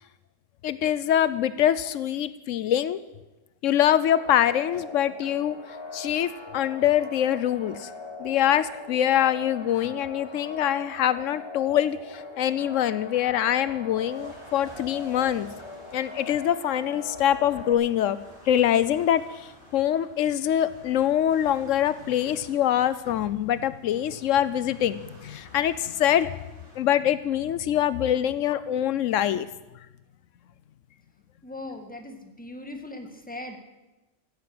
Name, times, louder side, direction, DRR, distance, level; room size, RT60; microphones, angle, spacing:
voice 1, 0.6-3.0 3.6-5.6 5.9-7.9 8.2-15.5 15.9-18.2 18.5-26.4 26.8-29.5, left 10 dB, 90° left, 15 dB, 1.0 m, -24 dB
sound 1, 3.9-17.7, left 3 dB, 25° left, 1.1 m, -41 dB
sound 2, 13.9-26.8, equal, 45° right, 5.3 m, -52 dB
voice 2, 31.4-33.6, left 2 dB, 5° left, 5 dB, 1.6 m, -39 dB
15.5 x 9.2 x 7.8 m, 1.0 s
omnidirectional pair, 1.3 m